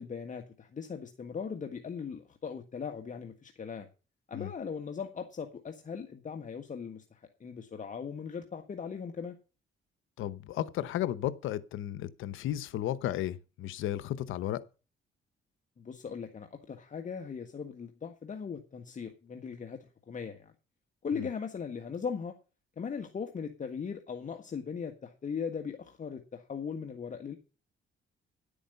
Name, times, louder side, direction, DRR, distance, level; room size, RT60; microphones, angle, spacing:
voice 1, 0.0-3.9 4.3-9.4 15.8-19.8 20.1-20.5 21.0-22.3 22.8-27.4, left 6 dB, 40° left, 1.7 m, -39 dB
voice 2, 10.2-14.6 21.1-21.3, left 12 dB, 85° left, 0.9 m, -34 dB
11.0 x 8.7 x 5.5 m
cardioid pair, 90°, 20 cm